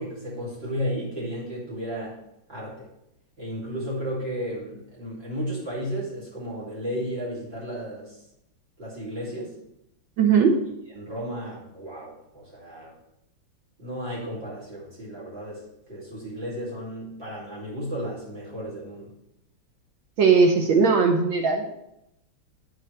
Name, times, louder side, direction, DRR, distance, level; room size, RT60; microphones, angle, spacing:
voice 1, 0.0-2.2 2.5-2.9 3.4-8.2 8.8-9.5 10.9-12.9 13.8-15.6 15.9-19.1, equal, 25° right, -7 dB, 2.8 m, -33 dB
voice 2, 10.2-10.6 20.2-21.7, right 5 dB, 70° right, 3 dB, 1.5 m, -19 dB
8.2 x 6.6 x 3.3 m, 0.84 s
omnidirectional pair, 2.4 m